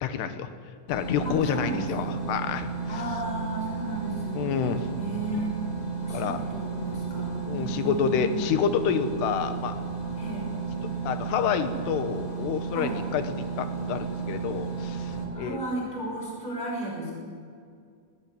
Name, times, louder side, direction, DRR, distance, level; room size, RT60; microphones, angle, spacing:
voice 1, 0.0-0.5 0.9-3.0 4.3-4.9 6.1-6.4 7.4-9.7 11.1-15.6, left 7 dB, 70° left, 9 dB, 3.0 m, -28 dB
sound 1, 0.9-15.2, right 5 dB, 55° left, 4.9 m, -33 dB
voice 2, 1.2-2.2 2.9-4.5 5.0-5.5 6.0-8.6 10.1-10.5 12.7-13.0 15.3-17.2, right 1 dB, 10° left, -2 dB, 6.5 m, -34 dB
20.0 x 18.0 x 8.9 m, 2.2 s
omnidirectional pair, 5.3 m